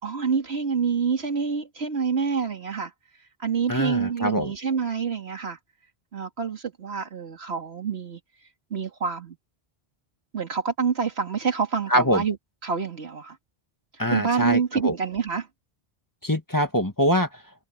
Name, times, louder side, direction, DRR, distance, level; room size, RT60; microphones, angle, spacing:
voice 1, 0.0-2.9 3.4-5.6 6.1-8.2 8.7-9.4 10.3-12.4 12.6-13.4 14.1-15.5, right 6 dB, 90° right, 2.4 m, -27 dB
voice 2, 3.7-4.5 11.9-12.2 14.0-14.9 16.2-17.3, equal, 20° left, 2.0 m, -23 dB
omnidirectional pair, 1.1 m